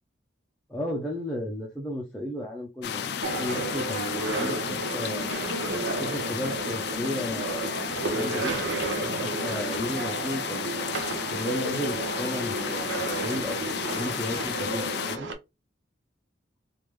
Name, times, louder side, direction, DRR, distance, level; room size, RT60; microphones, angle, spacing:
voice 1, 0.7-5.4 6.0-10.9 11.3-15.3, left 1 dB, 5° left, 0.5 m, -34 dB
sound 1, 2.8-15.2, left 8 dB, 55° left, 0.4 m, -33 dB
sound 2, 3.2-15.3, right 3 dB, 70° right, 0.7 m, -32 dB
3.4 x 2.5 x 3.2 m
head